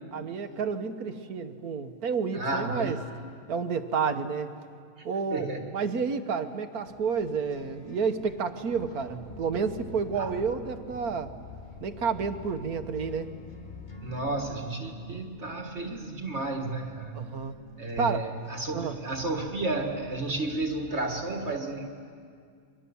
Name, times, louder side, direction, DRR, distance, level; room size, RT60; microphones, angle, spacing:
voice 1, 0.1-3.0 3.5-4.5 5.0-11.3 11.8-13.3 17.1-17.5 18.0-18.3 18.7-19.0, right 5 dB, 85° right, 8 dB, 1.7 m, -30 dB
voice 2, 2.3-3.1 5.3-5.7 10.2-10.3 14.0-17.4 17.8-22.0, right 2 dB, 50° right, 3 dB, 1.9 m, -32 dB
sound 1, 6.8-21.3, equal, 30° left, 2.1 m, -48 dB
sound 2, 9.2-14.4, left 5 dB, 55° left, 3.6 m, -46 dB
30.0 x 24.0 x 7.0 m, 2.2 s
omnidirectional pair, 1.5 m